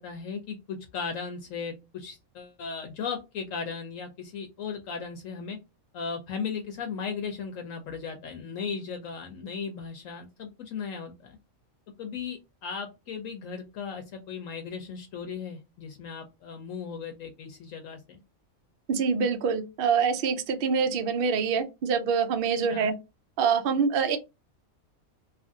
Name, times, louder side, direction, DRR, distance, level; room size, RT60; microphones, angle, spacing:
voice 1, 0.0-5.6 5.9-11.4 12.0-18.2 22.7-22.9, left 6 dB, 70° left, 0.9 m, -36 dB
voice 2, 18.9-22.9 23.4-24.2, right 6 dB, 65° right, 0.5 m, -25 dB
2.8 x 2.4 x 2.5 m
omnidirectional pair, 1.5 m